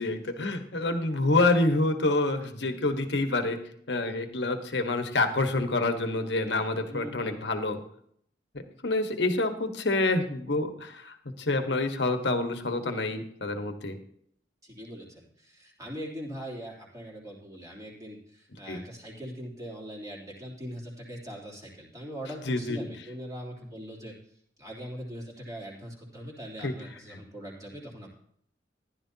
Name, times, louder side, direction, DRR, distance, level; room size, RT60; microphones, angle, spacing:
voice 1, 0.0-3.6 3.9-7.8 8.8-14.0 18.7-18.8 22.4-22.8 26.6-26.7 27.1-27.2, left 2 dB, 80° left, 7 dB, 1.4 m, -27 dB
voice 2, 6.9-7.4 14.6-24.1 24.6-28.1, equal, 20° right, -3 dB, 3.2 m, -41 dB
14.5 x 11.5 x 2.9 m, 0.67 s
head